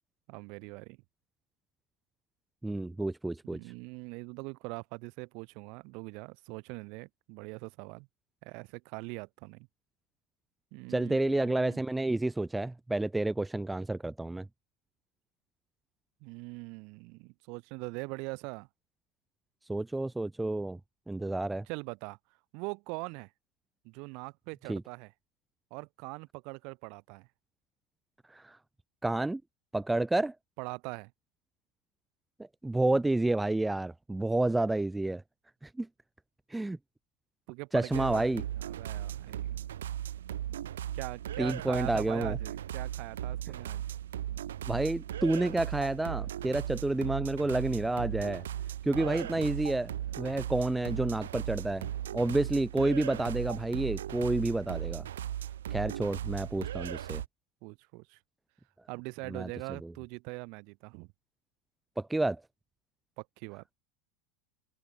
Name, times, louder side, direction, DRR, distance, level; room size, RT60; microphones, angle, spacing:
voice 1, 0.3-1.0 3.5-8.1 8.4-9.7 10.7-11.8 16.2-18.7 21.7-22.2 22.5-23.3 23.8-25.1 25.7-27.3 30.6-31.1 37.5-38.3 38.7-39.6 40.9-43.9 48.9-49.5 57.6-58.2 58.9-61.1 63.2-63.7, right 31 dB, 50° right, 3.4 m, -42 dB
voice 2, 2.6-3.6 10.9-14.5 19.7-20.8 21.1-21.6 24.7-24.8 28.3-28.6 29.0-29.4 29.7-30.4 32.6-35.2 35.6-35.9 36.5-36.8 37.7-38.4 41.4-42.4 44.7-48.4 48.8-55.1 55.7-57.2 59.3-59.5 59.8-59.9 62.0-62.4, right 2 dB, 10° right, 0.8 m, -30 dB
sound 1, 37.9-57.3, right 11 dB, 70° right, 0.7 m, -37 dB
open air
figure-of-eight pair, 85°, 0 cm